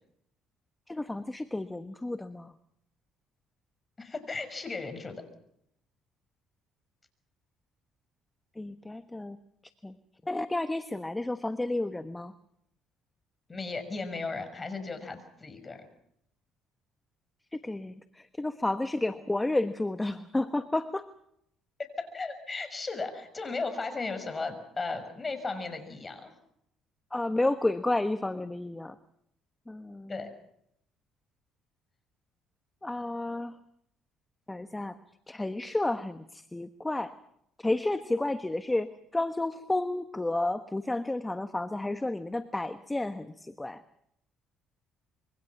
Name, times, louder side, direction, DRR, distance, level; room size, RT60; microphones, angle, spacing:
voice 1, 0.9-2.5 8.6-9.4 9.8-9.9 10.2-12.3 17.5-21.1 27.1-28.9 29.7-30.1 32.8-33.6 34.5-35.0 35.3-37.1 37.6-43.8, left 2 dB, 15° left, 10 dB, 1.2 m, -31 dB
voice 2, 4.0-5.2 13.5-15.9 22.0-26.3 30.1-30.3, left 3 dB, 30° left, 9 dB, 6.2 m, -36 dB
26.0 x 23.5 x 6.0 m, 0.75 s
supercardioid pair, 70°, 0 cm